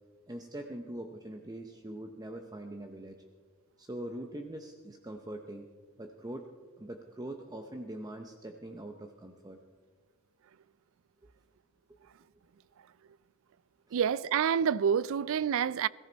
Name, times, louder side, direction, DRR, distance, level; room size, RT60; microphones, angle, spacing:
voice 1, 0.3-3.2 3.8-5.7 6.0-6.5 6.8-9.6 13.9-14.0, right 1 dB, 20° right, 0.8 m, -42 dB
voice 2, 13.9-15.9, right 7 dB, 65° right, 0.4 m, -27 dB
21.5 x 14.5 x 4.0 m
head